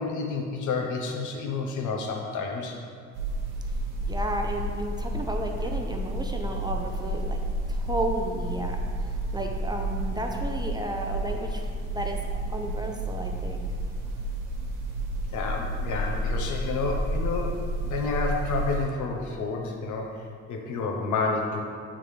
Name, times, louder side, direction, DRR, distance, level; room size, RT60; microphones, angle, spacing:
voice 1, 0.0-2.8 15.3-21.6, left 4 dB, 80° left, 1 dB, 0.9 m, -30 dB
sound 1, 3.1-18.9, right 1 dB, 85° right, 1.2 m, -31 dB
voice 2, 4.0-7.4 7.7-12.2 12.5-13.6, right 1 dB, 15° right, 2 dB, 0.5 m, -33 dB
8.8 x 3.7 x 3.2 m, 2.2 s
cardioid pair, 90°, 30 cm